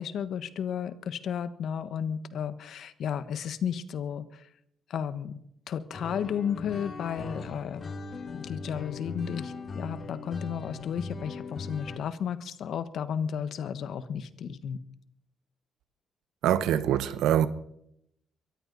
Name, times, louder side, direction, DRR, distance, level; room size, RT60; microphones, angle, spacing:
voice 1, 0.0-4.5 4.9-5.4 5.7-7.9 8.3-14.8, left 8 dB, 70° left, 1.4 m, -33 dB
sound 1, 5.9-12.0, left 3 dB, 40° left, 2.0 m, -39 dB
voice 2, 16.4-17.5, right 10 dB, 85° right, 1.1 m, -24 dB
23.0 x 14.5 x 4.2 m
cardioid pair, 90°, 0 cm